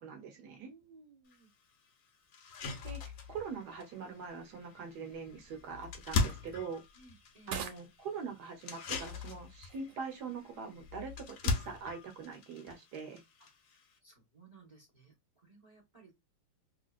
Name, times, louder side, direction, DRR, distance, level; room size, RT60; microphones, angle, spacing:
voice 1, 0.0-0.7 2.8-6.8 7.5-13.2, right 5 dB, 60° right, 1.2 m, -43 dB
voice 2, 0.6-1.5 6.9-7.6 13.4-13.5 14.0-16.1, right 3 dB, 20° right, 0.8 m, -59 dB
sound 1, 1.3-1.4 1.9-2.0 2.3-14.0, left 4 dB, 85° left, 0.7 m, -40 dB
sound 2, 3.2-12.4, right 6 dB, 80° right, 1.6 m, -52 dB
3.3 x 2.7 x 2.4 m
omnidirectional pair, 2.4 m